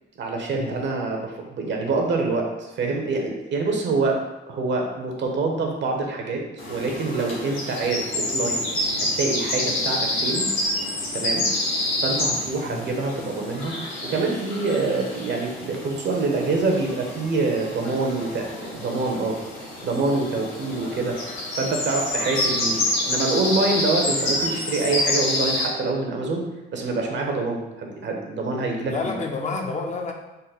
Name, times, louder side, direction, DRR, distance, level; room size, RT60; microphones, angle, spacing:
voice 1, 0.2-4.2 4.5-8.6 9.0-10.5 11.1-11.5 12.0-13.7 14.0-19.4 19.8-21.2 21.6-26.4 26.7-29.2, right 3 dB, 65° right, 1 dB, 0.9 m, -26 dB
sound 1, 6.6-25.7, left 1 dB, 80° left, 1.5 m, -28 dB
voice 2, 28.9-30.1, left 3 dB, 35° left, 2 dB, 0.6 m, -29 dB
4.0 x 2.1 x 4.1 m, 1.0 s
cardioid pair, 90°, 20 cm